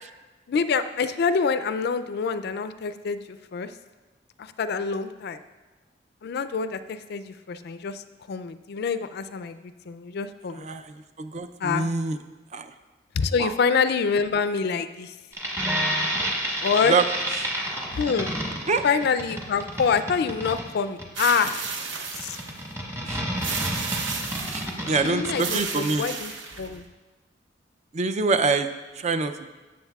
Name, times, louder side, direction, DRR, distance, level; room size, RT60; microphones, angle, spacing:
voice 1, 0.5-3.7 4.6-5.4 6.2-9.6 9.9-10.7 11.6-11.9 13.2-15.1 16.6-16.9 17.9-18.3 18.8-21.7 22.2-22.4 25.0-26.3 26.6-26.8, left 5 dB, 60° left, 12 dB, 0.4 m, -26 dB
voice 2, 10.6-12.2 12.5-12.7 13.4-13.5 16.9-17.1 17.3-17.5 18.7-18.8 23.0-23.2 24.5-26.1 27.9-28.7 29.0-29.5, right 4 dB, 40° right, 10 dB, 0.4 m, -25 dB
sound 1, 15.3-25.4, equal, 15° right, 1.3 m, -29 dB
sound 2, 21.2-22.6 23.4-24.8 25.4-26.8, right 5 dB, 80° right, 0.8 m, -33 dB
13.0 x 7.6 x 2.3 m, 1.2 s
head